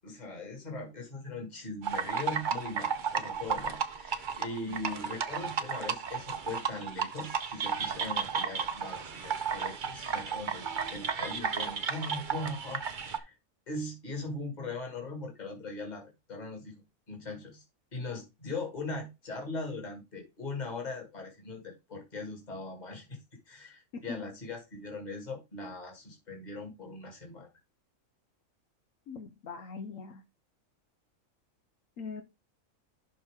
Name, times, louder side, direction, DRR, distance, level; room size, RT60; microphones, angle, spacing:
voice 1, 0.0-10.6 10.9-13.4 13.7-16.8 17.1-17.6 17.9-23.2 23.5-27.5, left 2 dB, 30° left, 2.3 m, -40 dB
sound 1, 1.8-13.2, right 6 dB, 45° right, 0.9 m, -33 dB
voice 2, 4.6-5.0 23.9-24.2 29.1-30.2 32.0-32.2, left 4 dB, 75° left, 1.3 m, -42 dB
11.5 x 4.3 x 3.7 m
omnidirectional pair, 1.4 m